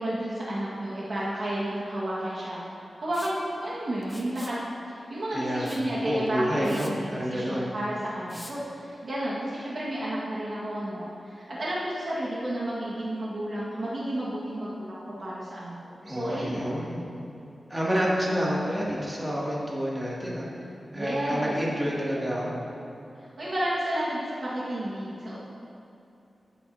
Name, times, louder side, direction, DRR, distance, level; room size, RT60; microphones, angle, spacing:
voice 1, 0.0-2.6 3.0-4.6 4.9-15.8 16.1-16.7 20.9-21.5 23.4-25.4, right 1 dB, 55° right, -8 dB, 1.7 m, -31 dB
Liquid, 3.1-3.4 4.0-4.6 5.6-5.9 6.3-6.4 6.6-6.9 8.3-8.5, left 1 dB, 10° left, 0.9 m, -45 dB
voice 2, 5.3-5.7 6.0-7.7 16.0-17.0 17.7-20.5 20.9-22.7, equal, 15° right, -6 dB, 2.4 m, -29 dB
14.5 x 8.4 x 2.8 m, 2.8 s
wide cardioid pair, 105°, 0 cm